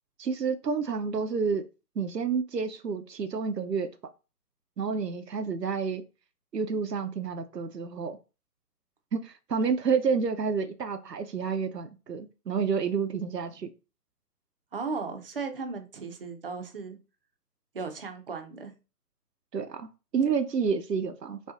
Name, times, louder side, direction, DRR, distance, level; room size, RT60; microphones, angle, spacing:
voice 1, 0.2-1.6 2.0-3.9 4.8-6.0 6.5-8.2 9.1-13.7 19.5-19.9 20.1-21.4, right 5 dB, 85° right, 8 dB, 0.7 m, -29 dB
voice 2, 14.7-17.0 17.7-18.7 20.2-20.3, right 4 dB, 35° right, 6 dB, 0.7 m, -36 dB
5.5 x 2.4 x 2.5 m, 0.31 s
figure-of-eight pair, 135°, 48 cm